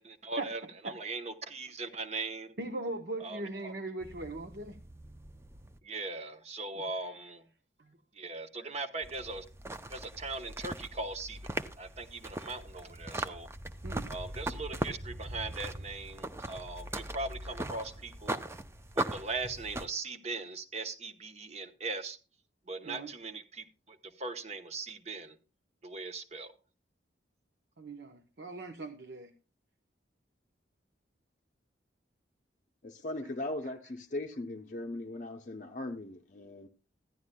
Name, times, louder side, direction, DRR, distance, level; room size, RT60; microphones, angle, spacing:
voice 1, 0.0-2.5 3.2-3.7 5.8-7.4 8.1-9.4 9.9-11.4 11.8-13.5 14.1-18.4 18.9-22.2 22.7-25.4 25.8-26.5, right 3 dB, 35° right, 0.9 m, -39 dB
voice 2, 2.6-4.8 7.8-8.0 8.6-8.7 13.8-14.1 22.8-23.1 27.8-29.3, right 2 dB, 60° right, 0.9 m, -40 dB
sound 1, 4.0-5.8 9.0-19.9, right 1 dB, 15° right, 0.5 m, -40 dB
voice 3, 32.8-36.7, left 2 dB, 40° left, 0.6 m, -39 dB
15.0 x 11.5 x 2.2 m
head